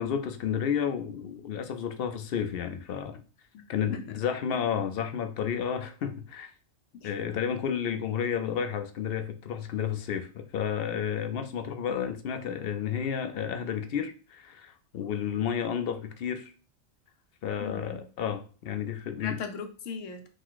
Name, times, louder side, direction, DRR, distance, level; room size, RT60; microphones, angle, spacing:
voice 1, 0.0-3.2 3.7-6.5 7.0-16.5 17.4-19.4, left 8 dB, 60° left, 9 dB, 0.7 m, -31 dB
voice 2, 17.6-18.0 19.2-20.3, left 5 dB, 85° left, 7 dB, 1.1 m, -38 dB
3.9 x 2.5 x 4.6 m, 0.37 s
omnidirectional pair, 1.3 m